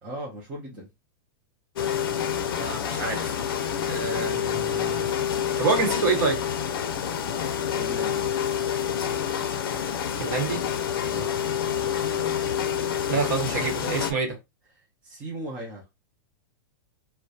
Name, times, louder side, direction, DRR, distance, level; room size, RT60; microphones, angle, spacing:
voice 1, 0.0-0.9 7.6-8.3 11.0-11.4 15.0-15.8, equal, 10° right, 0.4 m, -37 dB
sound 1, 1.8-14.1, left 8 dB, 80° left, 0.4 m, -27 dB
voice 2, 2.6-3.3 3.9-5.0 5.6-6.4 10.2-10.6 13.1-14.4, right 4 dB, 50° right, 0.9 m, -27 dB
2.3 x 2.0 x 2.6 m
supercardioid pair, 180°, 12 cm